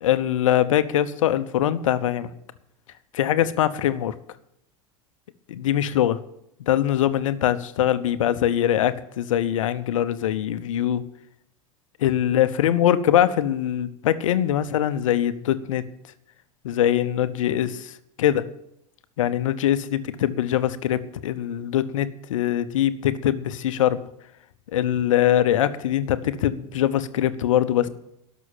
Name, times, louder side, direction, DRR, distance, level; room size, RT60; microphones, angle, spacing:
voice 1, 0.0-2.3 3.1-4.1 5.5-6.2 6.7-11.0 12.0-15.8 16.6-17.9 18.2-18.4 19.2-24.0 24.7-27.9, left 11 dB, 70° left, 14 dB, 0.8 m, -22 dB
12.0 x 6.2 x 9.0 m, 0.78 s
figure-of-eight pair, 85°, 18 cm